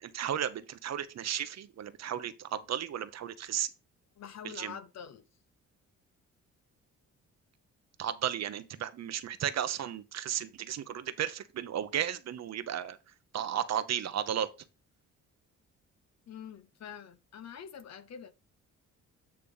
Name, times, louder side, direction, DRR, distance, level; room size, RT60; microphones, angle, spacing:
voice 1, 0.0-3.7 4.4-4.7 8.0-13.0 13.3-14.5, right 10 dB, 60° right, 0.9 m, -34 dB
voice 2, 4.2-5.3 16.3-18.3, left 8 dB, 60° left, 1.0 m, -45 dB
8.7 x 3.3 x 5.5 m
cardioid pair, 90°, 30 cm